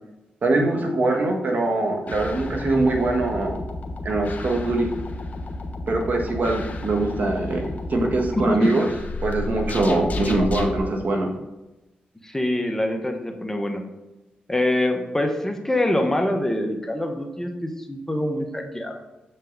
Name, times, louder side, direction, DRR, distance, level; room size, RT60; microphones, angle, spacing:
voice 1, 0.4-3.6 4.0-4.9 5.9-8.9 9.2-11.3, right 2 dB, 60° right, 2 dB, 1.6 m, -23 dB
sound 1, 2.1-10.8, left 2 dB, 55° left, 1.2 m, -32 dB
voice 2, 8.3-8.7 12.2-13.8 14.5-19.0, left 1 dB, 15° left, 4 dB, 1.2 m, -25 dB
7.6 x 5.6 x 4.0 m, 1.0 s
cardioid pair, 50°, 3 cm